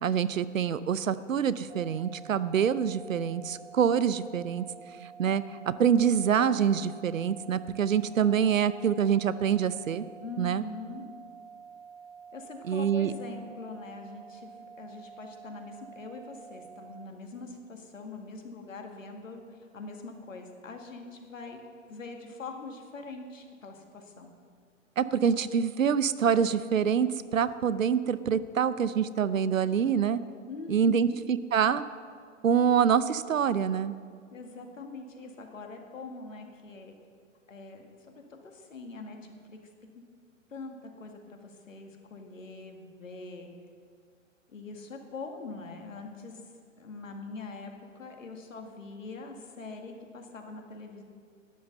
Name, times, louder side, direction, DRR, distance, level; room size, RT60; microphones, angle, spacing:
voice 1, 0.0-4.6 5.2-10.0 10.4-10.6 12.7-13.1 25.0-30.2 30.7-31.8 32.4-33.9, right 8 dB, 80° right, 15 dB, 0.7 m, -26 dB
sound 1, 1.7-17.1, right 6 dB, 55° right, 1.2 m, -49 dB
voice 2, 10.2-11.0 12.3-21.6 21.9-24.3 30.5-31.2 34.3-36.9 37.5-39.2 39.5-39.6 39.9-40.0 40.5-43.5 44.5-46.4 46.8-51.0, left 3 dB, 75° left, 3 dB, 2.1 m, -43 dB
12.5 x 10.0 x 6.7 m, 2.1 s
figure-of-eight pair, 120°, 39 cm